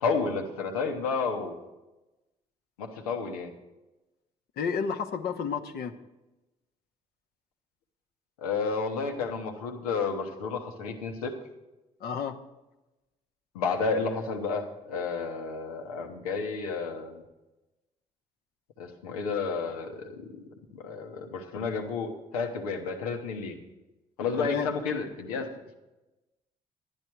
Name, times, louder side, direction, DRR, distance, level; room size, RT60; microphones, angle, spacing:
voice 1, 0.0-1.6 2.8-3.5 8.4-11.3 13.5-17.2 18.8-20.4 20.7-23.7 24.2-25.5, left 4 dB, 85° left, 4 dB, 1.1 m, -31 dB
voice 2, 4.6-5.9 12.0-12.4 24.4-24.7, left 6 dB, 60° left, 5 dB, 1.1 m, -31 dB
11.0 x 10.5 x 4.6 m, 1.0 s
hypercardioid pair, 50°, 18 cm